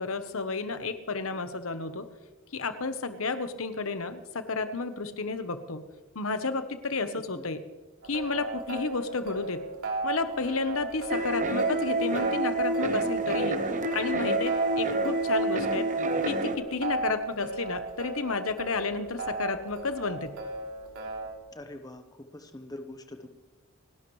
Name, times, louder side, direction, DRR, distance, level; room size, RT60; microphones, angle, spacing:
voice 1, 0.0-2.1 2.5-5.8 6.1-7.6 8.1-9.6 10.0-13.6 13.9-15.9 16.3-20.3, left 4 dB, 75° left, 10 dB, 1.1 m, -32 dB
sound 1, 8.0-21.3, right 3 dB, 80° right, 3.3 m, -36 dB
sound 2, 11.1-16.5, right 2 dB, 35° right, 1.0 m, -28 dB
voice 2, 21.5-23.3, left 1 dB, 20° left, 6 dB, 1.0 m, -44 dB
29.0 x 11.5 x 3.3 m, 1.1 s
head